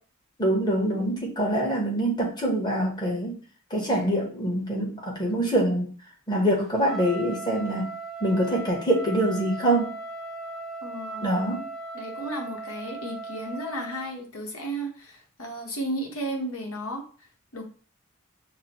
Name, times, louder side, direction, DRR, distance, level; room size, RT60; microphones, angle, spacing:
voice 1, 0.4-3.4 3.7-5.9 6.3-7.9 8.2-9.9 11.2-11.6, right 1 dB, 20° left, -1 dB, 1.0 m, -25 dB
Trumpet, 6.8-14.1, right 2 dB, ahead, 0.4 m, -38 dB
voice 2, 10.8-11.4 11.9-17.0 17.5-17.6, right 1 dB, 75° left, 1 dB, 1.0 m, -34 dB
5.7 x 2.1 x 2.9 m, 0.40 s
head